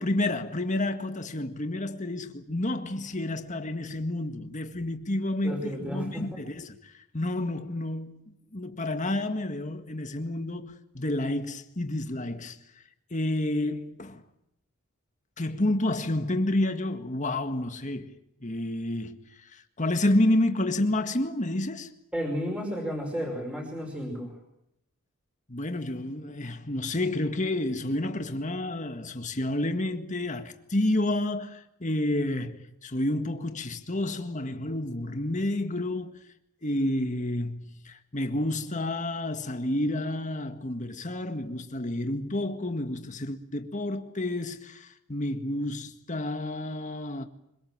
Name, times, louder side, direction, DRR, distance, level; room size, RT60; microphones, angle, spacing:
voice 1, 0.0-12.6 13.1-14.2 15.4-21.9 25.5-36.2 36.6-47.3, left 1 dB, 35° left, 1.8 m, -30 dB
voice 2, 5.4-6.3 22.1-24.3, equal, 5° right, 5.4 m, -32 dB
25.5 x 23.5 x 7.4 m
head